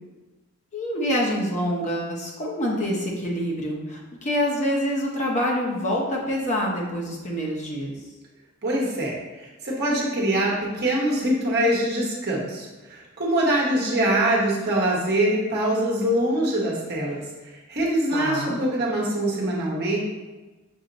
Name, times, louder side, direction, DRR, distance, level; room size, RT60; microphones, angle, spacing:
voice 1, 0.7-7.9 18.1-18.6, equal, 35° left, -2 dB, 0.7 m, -26 dB
voice 2, 8.6-20.0, right 1 dB, 50° right, -4 dB, 1.0 m, -24 dB
6.2 x 2.1 x 3.8 m, 1.2 s
head